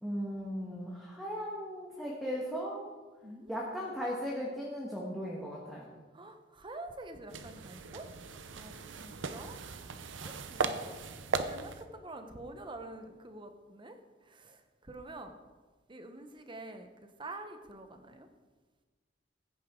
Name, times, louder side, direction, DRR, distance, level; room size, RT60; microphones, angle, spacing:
voice 1, 0.0-2.9 3.5-5.9, equal, ahead, -4 dB, 1.5 m, -37 dB
voice 2, 3.2-3.5 6.1-8.1 8.5-9.6 10.2-10.9 11.5-14.0 14.2-15.4 15.9-18.3, right 2 dB, 25° right, 7 dB, 0.9 m, -47 dB
sound 1, 7.3-11.9, right 4 dB, 85° right, 0.7 m, -38 dB
15.0 x 9.4 x 3.8 m, 1.3 s
head